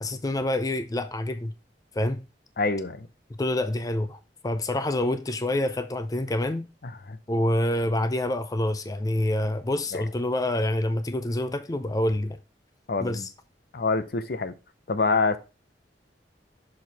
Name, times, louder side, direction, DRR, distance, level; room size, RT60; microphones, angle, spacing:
voice 1, 0.0-1.5 1.9-2.2 3.3-6.7 7.3-12.4 13.0-13.3, left 1 dB, 20° left, 0.5 m, -27 dB
voice 2, 2.6-3.1 7.1-7.2 9.9-10.0 12.9-13.2 13.7-14.6 14.9-15.4, left 3 dB, 60° left, 0.7 m, -26 dB
6.5 x 4.5 x 3.4 m
head